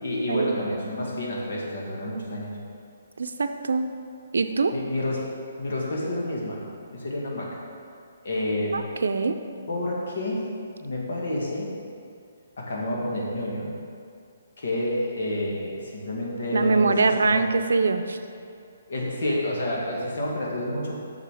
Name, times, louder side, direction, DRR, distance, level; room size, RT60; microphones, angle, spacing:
voice 1, 0.0-2.6 4.7-5.2 5.6-6.6 6.9-7.6 8.2-8.8 9.7-10.5 10.8-11.7 12.6-13.7 14.6-17.5 18.9-20.9, left 1 dB, 60° left, -3 dB, 1.9 m, -29 dB
voice 2, 3.2-3.9 4.3-4.7 8.7-9.3 16.5-18.2, right 4 dB, 85° right, 8 dB, 0.5 m, -23 dB
6.9 x 6.5 x 5.0 m, 2.4 s
hypercardioid pair, 175°, 0 cm